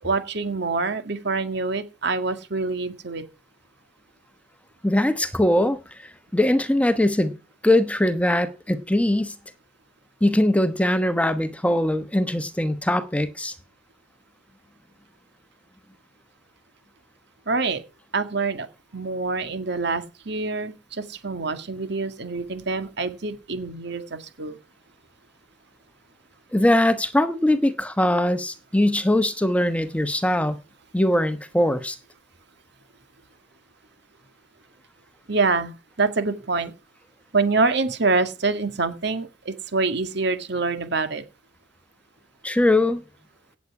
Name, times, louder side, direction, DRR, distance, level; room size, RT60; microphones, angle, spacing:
voice 1, 0.0-3.2 17.5-17.8 18.1-18.7 18.9-24.6 35.3-36.7 37.3-41.2, right 3 dB, 65° right, 2.0 m, -26 dB
voice 2, 4.8-5.8 6.3-7.3 7.6-9.3 10.2-13.5 26.5-30.6 30.9-32.0 42.4-43.0, left 1 dB, 5° left, 1.1 m, -21 dB
17.0 x 8.4 x 4.8 m
head